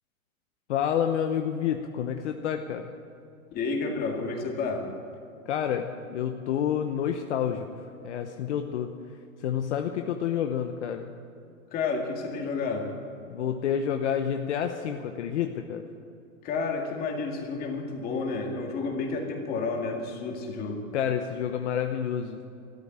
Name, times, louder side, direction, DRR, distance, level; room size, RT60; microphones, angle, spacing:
voice 1, 0.7-2.9 5.5-8.9 9.4-11.1 13.3-15.8 20.9-22.4, left 8 dB, 50° left, 6 dB, 1.0 m, -29 dB
voice 2, 3.5-4.9 11.7-12.9 16.4-20.8, left 4 dB, 20° left, 1 dB, 2.2 m, -30 dB
13.5 x 12.5 x 8.7 m, 2.7 s
hypercardioid pair, 150°, 43 cm